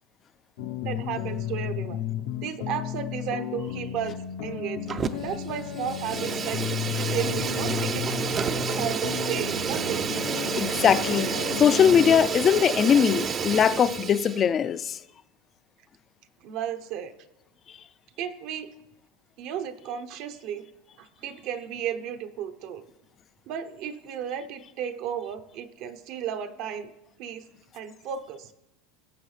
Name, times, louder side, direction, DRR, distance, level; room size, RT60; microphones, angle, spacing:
sound 1, 0.6-12.1, left 10 dB, 70° left, 0.8 m, -33 dB
voice 1, 0.8-2.0 2.4-4.9 5.2-6.6 6.9-8.3 8.7-10.1 16.4-17.1 18.2-18.7 19.4-20.6 21.0-22.8 23.5-26.9 27.2-27.4 27.7-28.5, right 9 dB, 55° right, 0.7 m, -34 dB
Fire, 4.9-5.4 5.7-14.4, right 6 dB, 25° right, 0.5 m, -30 dB
voice 2, 10.6-11.3 11.6-15.0, left 8 dB, 30° left, 0.4 m, -21 dB
18.0 x 7.0 x 3.3 m
supercardioid pair, 135°, 0 cm